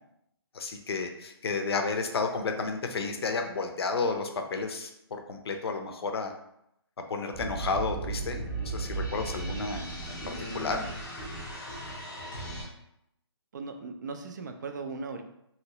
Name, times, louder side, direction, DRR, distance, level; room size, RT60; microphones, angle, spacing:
voice 1, 0.5-6.3 7.1-9.8 10.1-10.8, left 4 dB, 70° left, 5 dB, 0.5 m, -32 dB
sound 1, 7.3-12.6, right 3 dB, 15° left, 0.6 m, -36 dB
voice 2, 10.2-10.9 13.5-15.2, right 4 dB, 45° right, 6 dB, 0.4 m, -39 dB
3.0 x 2.7 x 2.9 m, 0.79 s
hypercardioid pair, 165°, 14 cm